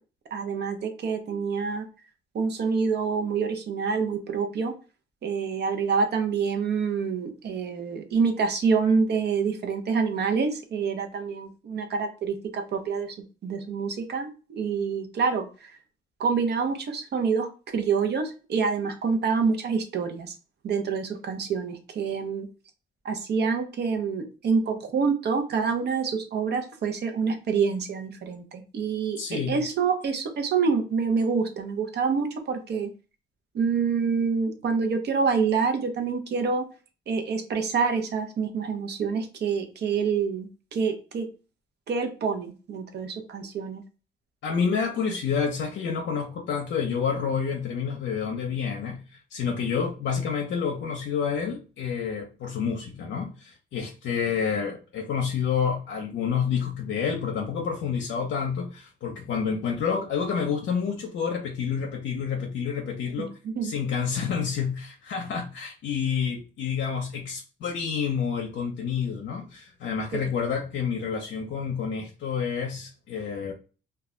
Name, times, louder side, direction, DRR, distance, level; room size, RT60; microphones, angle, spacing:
voice 1, 0.3-1.8 2.3-4.7 5.2-13.2 13.4-15.8 16.2-20.3 20.6-22.5 23.0-29.2 29.5-32.9 33.5-36.7 37.1-41.3 41.9-43.8 63.2-63.7 70.1-70.3, right 5 dB, 55° right, 0.7 m, -27 dB
voice 2, 29.2-29.6 44.4-49.0 49.3-63.3 63.6-73.5, left 6 dB, 70° left, 0.6 m, -29 dB
2.3 x 2.1 x 3.6 m
cardioid pair, 90°, 20 cm